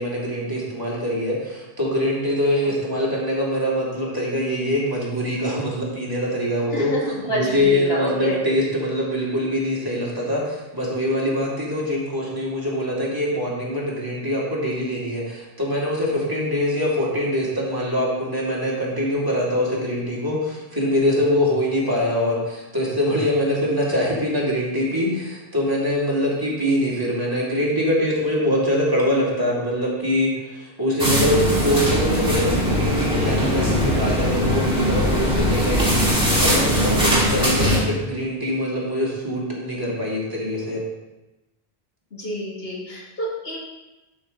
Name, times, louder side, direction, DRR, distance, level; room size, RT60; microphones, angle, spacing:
voice 1, 0.0-6.9 7.3-36.1 36.4-40.8, equal, 20° right, -6 dB, 2.3 m, -23 dB
voice 2, 6.7-8.4 42.1-43.6, equal, 70° left, -3 dB, 2.1 m, -28 dB
sound 1, 31.0-37.8, equal, 5° right, 2.0 m, -20 dB
10.5 x 5.7 x 3.8 m, 1.0 s
omnidirectional pair, 1.1 m